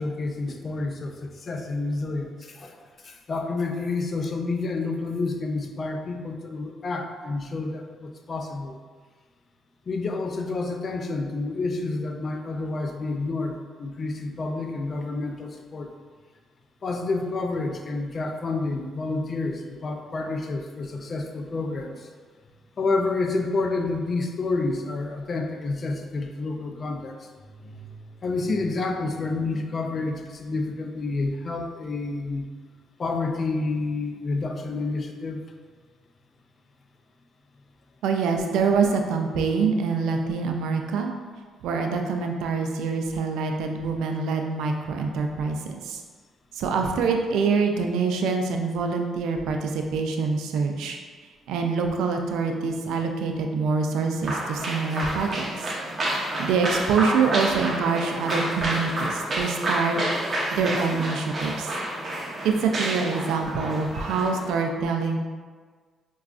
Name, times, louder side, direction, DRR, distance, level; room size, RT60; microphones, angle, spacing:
voice 1, 0.0-8.7 9.9-15.9 16.8-22.1 22.8-27.3 27.6-32.5 33.0-35.5, left 3 dB, 40° left, 4 dB, 0.4 m, -29 dB
voice 2, 38.0-41.1 41.6-46.0 46.6-51.0 51.5-55.7 56.4-60.0 60.5-61.7 62.4-65.2, right 5 dB, 85° right, 3 dB, 0.3 m, -25 dB
sound 1, 54.2-64.5, right 1 dB, 40° right, 0.7 m, -29 dB
4.7 x 2.3 x 2.4 m, 1.5 s
cardioid pair, 90°, 0 cm